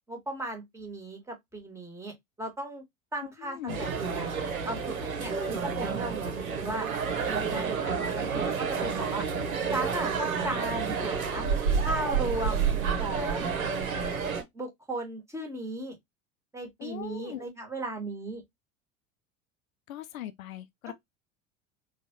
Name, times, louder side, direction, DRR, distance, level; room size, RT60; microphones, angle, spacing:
voice 1, 0.1-2.8 3.1-6.9 7.3-9.2 9.7-11.5 11.8-12.7 12.9-13.5 14.5-15.9 16.5-18.4, right 2 dB, 5° right, 1.4 m, -36 dB
voice 2, 3.4-3.8 16.8-17.5 19.9-20.9, left 12 dB, 75° left, 0.6 m, -40 dB
sound 1, 3.7-14.4, right 6 dB, 80° right, 0.9 m, -30 dB
3.8 x 2.4 x 2.8 m
figure-of-eight pair, 75°, 41 cm